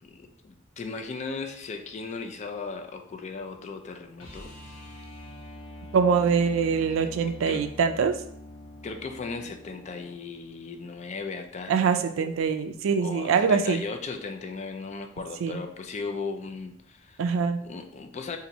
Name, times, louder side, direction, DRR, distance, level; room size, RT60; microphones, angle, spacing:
voice 1, 0.0-4.8 7.1-7.6 8.8-11.8 12.2-12.3 13.0-17.2 17.6-18.4, left 4 dB, 35° left, 6 dB, 0.3 m, -37 dB
sound 1, 4.2-10.2 12.6-12.7, left 1 dB, 80° left, 0.8 m, -44 dB
voice 2, 5.9-8.2 11.7-13.8 15.4-15.6 17.2-17.6, right 6 dB, 70° right, 9 dB, 0.3 m, -24 dB
2.8 x 2.6 x 4.1 m, 0.66 s
head